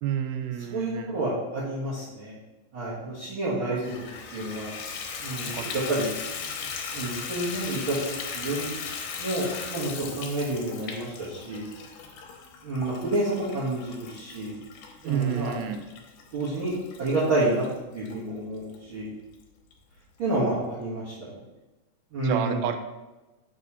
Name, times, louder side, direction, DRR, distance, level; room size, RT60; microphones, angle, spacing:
voice 1, 0.0-1.2 3.7-3.8 5.4-5.7 15.0-15.8 22.2-22.8, right 9 dB, 90° right, 7 dB, 2.4 m, -30 dB
voice 2, 0.7-2.4 2.7-4.8 5.2-6.1 6.9-7.9 8.3-8.9 9.2-11.7 12.6-14.6 15.0-15.6 16.3-16.7 17.0-17.6 17.9-19.1 20.2-21.3 22.1-22.7, right 2 dB, 45° right, -11 dB, 2.1 m, -29 dB
Water tap faucet / Bathtub (filling or washing), 3.8-18.2 18.7-18.8 19.3-19.4 19.7-19.8, left 6 dB, 75° left, 2.4 m, -38 dB
7.1 x 3.5 x 5.6 m, 1.1 s
omnidirectional pair, 4.1 m